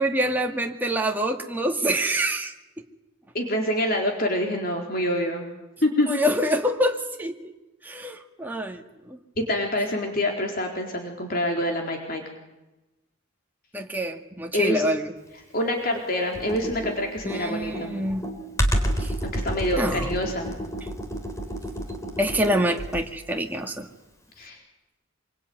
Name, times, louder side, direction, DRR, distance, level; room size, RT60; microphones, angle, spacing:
voice 1, 0.0-2.5 6.1-7.5 7.8-9.2 13.7-15.1 17.2-18.3 19.0-19.1 19.8-20.1 22.2-23.9, equal, 10° right, 2 dB, 2.1 m, -26 dB
voice 2, 3.3-5.4 5.8-6.1 9.4-12.2 14.5-14.8 15.5-17.9 19.2-20.5 24.4-24.6, left 1 dB, 45° left, 2 dB, 4.1 m, -26 dB
Computer keyboard, 16.3-23.2, equal, 15° left, 3.8 m, -29 dB
26.0 x 24.0 x 9.5 m, 1.0 s
head